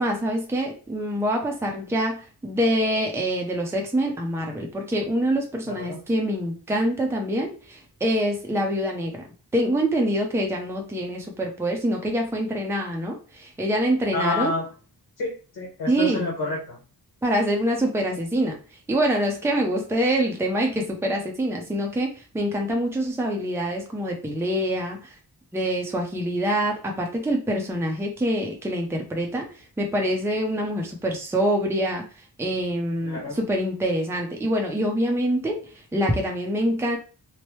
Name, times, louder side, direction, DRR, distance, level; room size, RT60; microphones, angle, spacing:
voice 1, 0.0-9.3 9.5-14.5 15.9-16.3 17.2-18.6 18.9-25.1 25.5-29.4 29.8-32.0 32.4-35.6 35.9-37.0, equal, 5° right, 1 dB, 0.5 m, -25 dB
voice 2, 5.7-6.0 14.1-14.6 15.2-16.8 33.0-33.4, left 2 dB, 80° left, -2 dB, 1.2 m, -29 dB
3.1 x 2.1 x 3.1 m, 0.36 s
wide cardioid pair, 125°, 38 cm